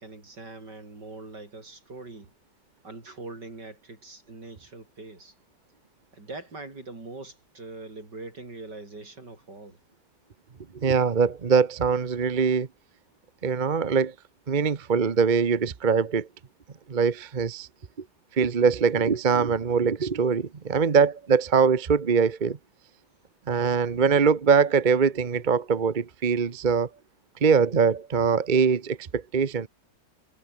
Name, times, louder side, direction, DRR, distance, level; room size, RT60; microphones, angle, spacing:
voice 1, 0.0-2.3 2.8-5.3 6.1-9.8, right 2 dB, 75° right, 6.4 m, -42 dB
voice 2, 10.8-12.7 13.4-14.1 14.5-16.3 16.9-17.7 18.3-22.6 23.5-26.9 27.4-29.7, right 5 dB, 35° right, 1.0 m, -22 dB
omnidirectional pair, 1.9 m